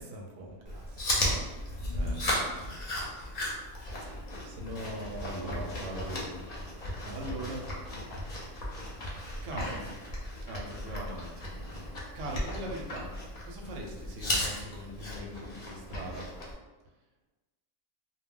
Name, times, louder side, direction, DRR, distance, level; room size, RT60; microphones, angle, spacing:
voice 1, 0.0-2.0 4.0-5.8 7.0-7.4, equal, 60° right, 0 dB, 0.7 m, -43 dB
Chewing mastication, 0.7-16.5, left 1 dB, 45° left, 0.6 m, -36 dB
voice 2, 1.9-2.8 5.2-6.3 7.1-7.7 9.4-9.9 10.4-11.5 12.1-13.2 13.4-16.3, right 1 dB, 85° right, 0 dB, 0.9 m, -40 dB
2.1 x 2.1 x 3.6 m, 1.2 s
omnidirectional pair, 1.2 m